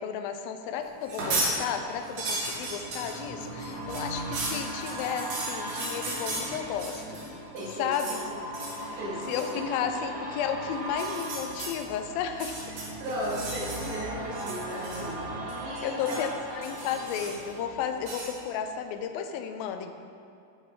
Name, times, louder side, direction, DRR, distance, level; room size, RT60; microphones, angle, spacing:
voice 1, 0.0-7.2 7.8-8.2 9.3-12.6 15.8-19.9, left 8 dB, 80° left, 7 dB, 2.2 m, -33 dB
sound 1, 0.9-18.6 19.0-19.1, right 1 dB, 25° right, 1.6 m, -39 dB
sound 2, 1.0-1.6 1.9-7.3 7.6-8.2 8.5-8.8 9.2-9.5 10.9-11.7 12.3-14.0 14.3-15.2 15.5-16.3 16.6-17.5 18.0-18.3, right 2 dB, 60° right, 3.1 m, -35 dB
voice 2, 7.5-8.4 8.9-9.6 12.7-16.2, equal, 80° right, -7 dB, 4.4 m, -36 dB
13.5 x 5.0 x 3.8 m, 2.5 s
omnidirectional pair, 4.4 m